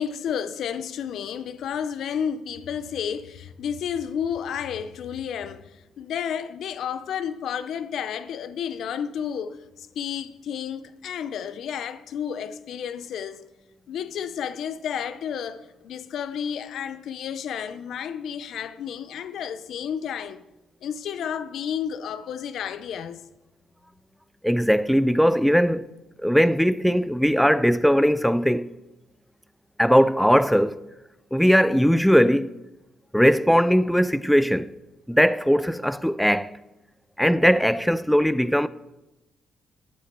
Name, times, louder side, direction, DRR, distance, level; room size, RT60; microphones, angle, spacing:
voice 1, 0.0-5.7 6.0-9.6 10.0-13.4 13.9-20.4 20.8-23.2, left 8 dB, 70° left, 0.5 m, -31 dB
voice 2, 24.4-25.9 26.2-28.7 29.8-30.8 31.3-32.5 33.1-34.7 35.1-36.5 37.2-38.7, equal, ahead, 0.4 m, -19 dB
11.0 x 7.9 x 4.4 m
cardioid pair, 90°, 0 cm